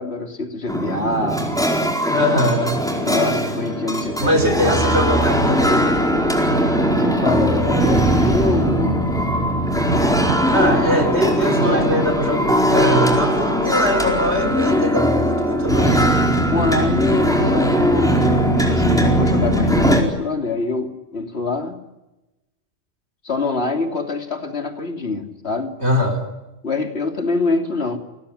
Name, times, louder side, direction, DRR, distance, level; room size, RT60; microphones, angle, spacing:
voice 1, 0.0-1.5 3.0-5.2 7.0-9.2 11.6-12.1 15.8-16.0 16.5-21.8 23.2-25.7 26.6-28.0, left 3 dB, 75° left, 5 dB, 3.3 m, -25 dB
sound 1, 0.7-20.0, equal, 5° left, 4.5 m, -19 dB
voice 2, 2.1-2.8 4.2-5.8 10.5-16.0 25.8-26.2, equal, 90° right, 4 dB, 4.1 m, -21 dB
29.5 x 19.5 x 10.0 m, 1.0 s
omnidirectional pair, 1.1 m